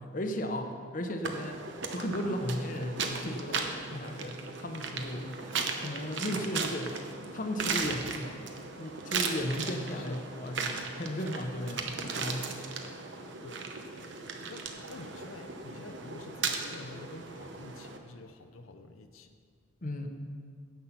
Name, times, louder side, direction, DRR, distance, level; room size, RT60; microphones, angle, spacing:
voice 1, 0.0-1.6 1.9-5.2 5.8-6.9 7.3-8.3 8.8-12.5 19.8-20.1, equal, 40° left, 5 dB, 0.7 m, -35 dB
sound 1, 1.2-18.0, right 4 dB, 60° right, 0.9 m, -37 dB
voice 2, 5.1-5.4 9.9-10.3 13.4-13.7 14.5-19.3, left 2 dB, 85° left, 6 dB, 0.6 m, -48 dB
9.8 x 8.2 x 5.8 m, 2.1 s
head